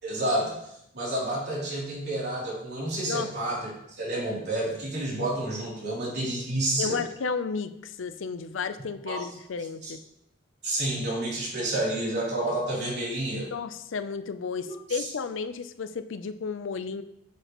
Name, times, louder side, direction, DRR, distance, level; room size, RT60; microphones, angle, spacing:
voice 1, 0.0-0.6 0.9-7.0 9.1-9.2 9.8-9.9 10.6-13.5 14.6-15.0, right 1 dB, 60° right, -5 dB, 3.1 m, -30 dB
voice 2, 6.8-10.0 13.3-17.0, left 5 dB, 80° left, 11 dB, 0.5 m, -33 dB
8.1 x 7.0 x 3.0 m, 0.78 s
head